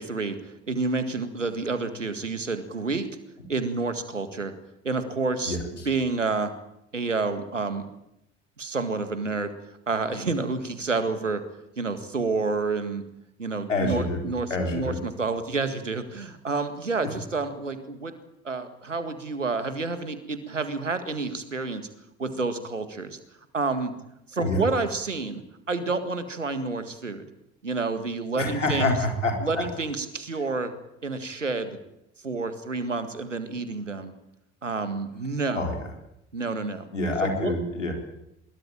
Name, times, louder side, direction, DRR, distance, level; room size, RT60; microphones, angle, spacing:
voice 1, 0.0-3.1 3.5-4.5 4.8-5.6 5.9-6.5 6.9-7.9 8.6-9.5 9.9-11.4 11.8-13.0 13.4-18.1 18.4-21.9 22.2-23.2 23.5-23.9 24.3-25.4 25.7-27.2 27.6-28.9 29.4-30.7 31.0-31.8 32.2-34.1 34.6-35.7 36.3-36.9 37.2-37.5, right 3 dB, 90° right, 10 dB, 2.0 m, -29 dB
voice 2, 5.4-5.9 13.7-14.2 14.5-15.0 24.4-24.6 28.4-29.6 35.5-35.8 36.9-37.9, left 2 dB, 90° left, 3 dB, 4.2 m, -27 dB
23.5 x 22.0 x 8.9 m, 0.82 s
figure-of-eight pair, 50°, 36 cm